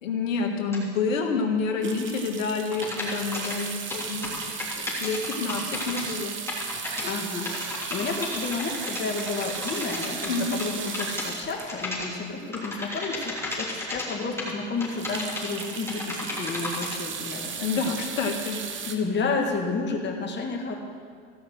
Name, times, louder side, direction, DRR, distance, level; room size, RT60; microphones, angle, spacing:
voice 1, 0.0-4.6 5.0-6.4 10.3-10.5 17.6-18.6, left 4 dB, 90° left, 3 dB, 1.7 m, -28 dB
sound 1, 0.7-0.8 2.7-6.2 6.5-7.1 7.5-11.3 11.6-12.1 12.5-14.5 14.8-17.0, left 2 dB, 5° left, 3.5 m, -33 dB
voice 2, 1.8-2.2 7.0-18.0 18.8-20.8, left 4 dB, 30° left, 2 dB, 2.0 m, -31 dB
sound 2, 1.8-13.1 13.6-13.7 13.9-14.1 14.4-18.9, right 6 dB, 30° right, 1.2 m, -36 dB
15.0 x 6.1 x 7.8 m, 2.1 s
supercardioid pair, 110°, 38 cm